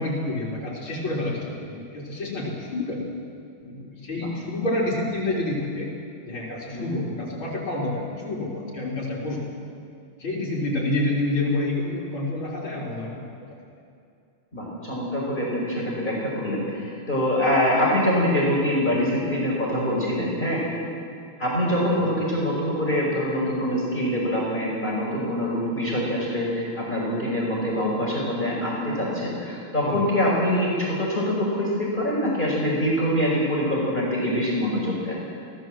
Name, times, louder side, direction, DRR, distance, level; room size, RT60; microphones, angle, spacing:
voice 1, 0.0-3.1 3.6-5.9 6.2-9.5 10.2-13.5 22.0-22.2 29.8-30.1, left 2 dB, 70° left, -5 dB, 4.4 m, -28 dB
voice 2, 14.5-20.6 21.4-35.2, equal, 20° left, -4 dB, 5.3 m, -24 dB
27.5 x 17.5 x 7.6 m, 2.4 s
omnidirectional pair, 2.3 m